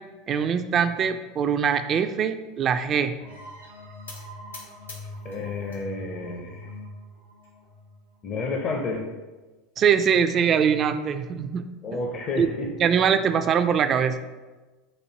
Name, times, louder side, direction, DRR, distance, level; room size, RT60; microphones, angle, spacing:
voice 1, 0.3-3.1 9.8-11.6 12.4-12.5 12.8-14.2, right 7 dB, 35° right, 9 dB, 0.3 m, -22 dB
sound 1, 3.2-8.7, left 1 dB, 85° right, 0.7 m, -43 dB
sound 2, 4.1-5.9 6.2-6.9 7.4-7.5 7.8-7.9 8.3-8.4 9.5-10.1, left 3 dB, 80° left, 0.8 m, -47 dB
voice 2, 5.2-6.7 8.2-9.1 11.8-12.7, left 3 dB, 40° left, 1 dB, 0.5 m, -30 dB
4.2 x 2.6 x 4.8 m, 1.2 s
figure-of-eight pair, 75°, 0 cm